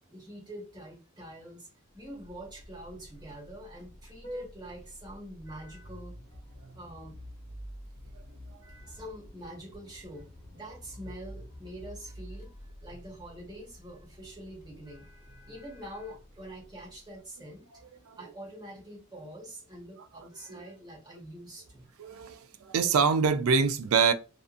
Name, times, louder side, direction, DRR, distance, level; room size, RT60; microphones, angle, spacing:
voice 1, 0.1-1.7 1.9-6.1 6.7-7.1 8.6-17.8 18.2-21.9, right 1 dB, 20° right, 1.2 m, -45 dB
Vehicle horn car horn honking, 1.9-17.2, equal, 35° left, 0.8 m, -48 dB
voice 2, 20.2-20.6 22.0-24.1, right 5 dB, 80° right, 0.4 m, -26 dB
2.7 x 2.5 x 2.4 m
head